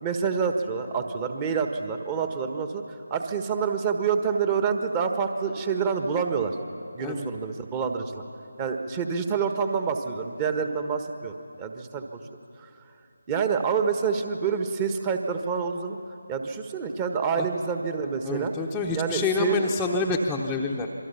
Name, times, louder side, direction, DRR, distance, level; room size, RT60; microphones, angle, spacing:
voice 1, 0.0-2.8 3.1-6.5 6.9-8.2 8.6-12.2 12.6-12.7 13.3-16.0 16.3-18.5 18.9-19.7, right 6 dB, 20° right, 6 dB, 1.4 m, -27 dB
voice 2, 18.2-20.9, left 3 dB, 5° left, -3 dB, 1.0 m, -27 dB
27.0 x 23.5 x 5.8 m, 2.6 s
figure-of-eight pair, 155°, 0 cm